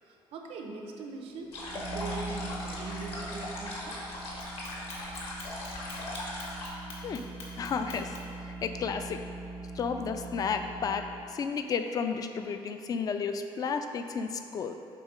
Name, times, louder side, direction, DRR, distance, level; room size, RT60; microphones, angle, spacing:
voice 1, 0.0-4.3, right 3 dB, 80° right, 2 dB, 0.8 m, -42 dB
sound 1, 1.5-6.7, left 1 dB, 65° left, 1.4 m, -39 dB
sound 2, 1.5-11.4, right 3 dB, 25° right, 0.5 m, -42 dB
Clock, 4.4-8.4, left 3 dB, 90° left, 1.4 m, -47 dB
voice 2, 7.6-8.2 8.6-9.2 9.7-14.7, left 5 dB, 40° left, 7 dB, 0.4 m, -32 dB
7.5 x 4.0 x 5.1 m, 2.6 s
cardioid pair, 150°, 10 cm